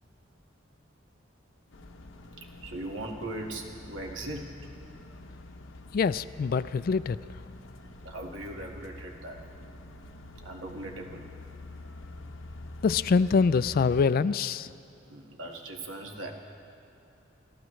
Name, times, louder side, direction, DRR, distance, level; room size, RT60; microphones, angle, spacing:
sound 1, 1.7-14.1, left 2 dB, 80° left, 0.9 m, -46 dB
voice 1, 2.4-4.5 7.8-9.4 10.4-11.2 15.1-16.3, right 2 dB, 85° right, 1 dB, 1.8 m, -39 dB
voice 2, 5.9-7.2 12.8-14.7, left 5 dB, 50° left, 15 dB, 0.3 m, -24 dB
30.0 x 14.5 x 3.2 m, 2.9 s
head